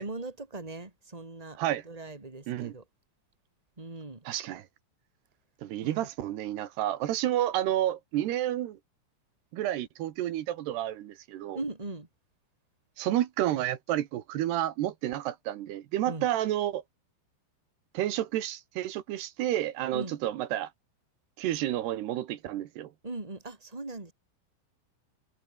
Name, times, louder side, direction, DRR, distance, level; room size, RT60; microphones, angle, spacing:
voice 1, 0.0-1.6 1.8-2.8 3.8-4.2 5.8-6.1 11.5-12.1 16.1-16.3 19.9-20.2 23.0-24.1, right 2 dB, 15° right, 1.4 m, -39 dB
voice 2, 4.2-4.7 5.6-8.8 9.5-11.6 13.0-16.8 17.9-20.7 21.4-22.9, right 13 dB, 70° right, 3.1 m, -30 dB
omnidirectional pair, 5.6 m